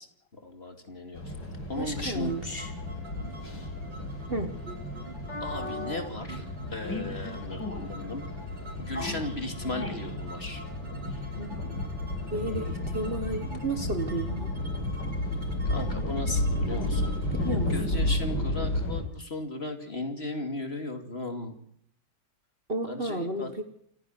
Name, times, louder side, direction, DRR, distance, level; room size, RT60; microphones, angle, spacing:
voice 1, 0.3-1.3 1.7-2.3 5.4-6.4 6.7-8.2 8.7-10.6 15.6-17.1 17.7-21.5 22.8-23.6, left 2 dB, 30° left, 6 dB, 2.8 m, -36 dB
sound 1, 1.1-19.0, left 1 dB, 65° left, 5.6 m, -32 dB
sound 2, 1.7-19.4, right 2 dB, 90° right, 4.7 m, -48 dB
voice 2, 1.8-2.7 4.3-4.5 11.4-11.5 12.3-14.5 17.3-18.1 22.7-23.6, right 2 dB, 30° right, 7 dB, 1.8 m, -32 dB
28.5 x 10.0 x 9.7 m, 0.67 s
omnidirectional pair, 2.1 m